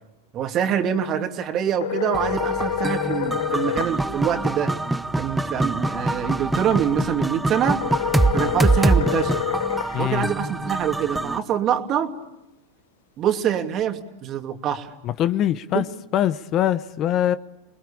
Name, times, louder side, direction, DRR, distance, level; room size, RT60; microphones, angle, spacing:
voice 1, 0.3-4.7 5.2-7.8 8.3-9.4 10.0-12.1 13.2-14.9 15.7-15.8, right 8 dB, 40° right, 2.6 m, -25 dB
sound 1, 1.8-4.0 7.8-10.0, left 10 dB, 80° left, 1.0 m, -27 dB
sound 2, 2.1-11.4, right 2 dB, 5° right, 0.9 m, -24 dB
voice 2, 9.9-10.3 15.0-15.9 16.1-17.4, left 11 dB, 40° left, 0.8 m, -22 dB
28.5 x 20.5 x 8.7 m
hypercardioid pair, 115°, 0 cm